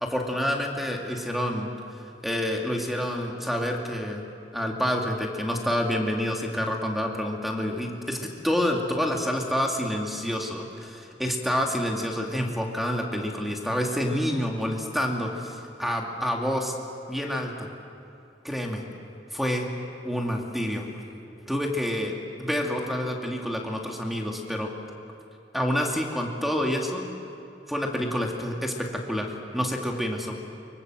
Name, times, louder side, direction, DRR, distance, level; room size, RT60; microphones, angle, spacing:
voice 1, 0.0-4.2 4.5-16.7 17.1-17.7 18.4-18.8 19.3-19.7 20.0-20.9 21.5-24.7 25.5-27.0 27.7-30.3, equal, ahead, 1 dB, 2.5 m, -28 dB
24.5 x 23.5 x 7.8 m, 2.6 s
head